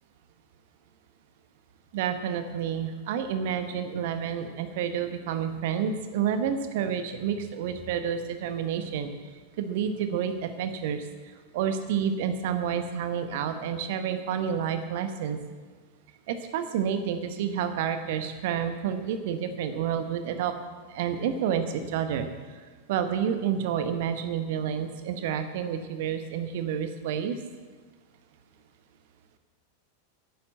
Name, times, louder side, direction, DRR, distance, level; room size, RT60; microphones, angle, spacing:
voice 1, 1.9-9.1 9.6-11.1 11.5-15.4 16.3-20.5 20.9-22.3 22.9-27.3, right 8 dB, 50° right, 8 dB, 1.2 m, -29 dB
11.5 x 10.0 x 7.7 m, 1.4 s
figure-of-eight pair, 90°, 0 cm